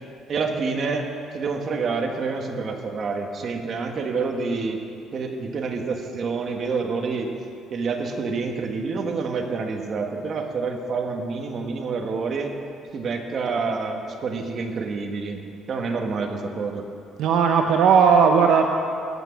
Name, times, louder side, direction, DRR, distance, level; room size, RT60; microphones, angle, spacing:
voice 1, 0.3-1.0 1.3-4.8 5.1-7.3 7.7-12.5 12.9-15.4 15.7-16.9, right 4 dB, 40° right, 3 dB, 1.3 m, -27 dB
voice 2, 17.2-18.7, right 6 dB, 70° right, 4 dB, 0.7 m, -16 dB
15.0 x 6.1 x 8.5 m, 2.5 s
cardioid pair, 150°, 0 cm